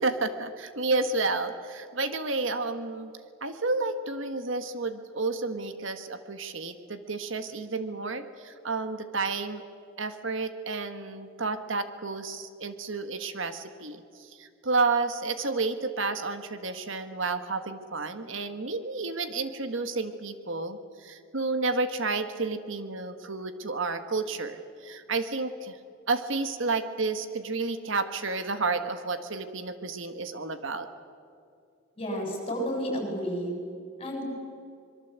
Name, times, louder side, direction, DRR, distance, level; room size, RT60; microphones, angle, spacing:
voice 1, 0.0-3.1 3.4-9.6 10.0-25.8 26.1-30.9, right 3 dB, 65° right, 9 dB, 1.5 m, -31 dB
voice 2, 32.0-33.5 34.0-34.2, equal, 25° left, 1 dB, 7.3 m, -31 dB
26.0 x 23.0 x 8.2 m, 2.4 s
head